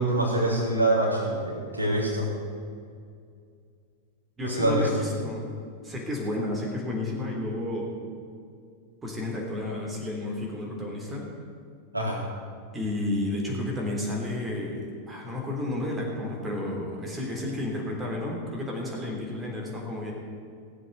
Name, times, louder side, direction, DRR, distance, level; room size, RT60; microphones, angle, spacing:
voice 1, 0.0-2.3 4.4-4.9 11.9-12.2, right 1 dB, 80° right, -3 dB, 3.5 m, -25 dB
voice 2, 4.4-5.5 5.8-7.9 9.0-11.3 12.7-20.1, left 1 dB, 15° right, -1 dB, 3.5 m, -31 dB
17.0 x 7.8 x 8.0 m, 2.3 s
figure-of-eight pair, 90°, 0 cm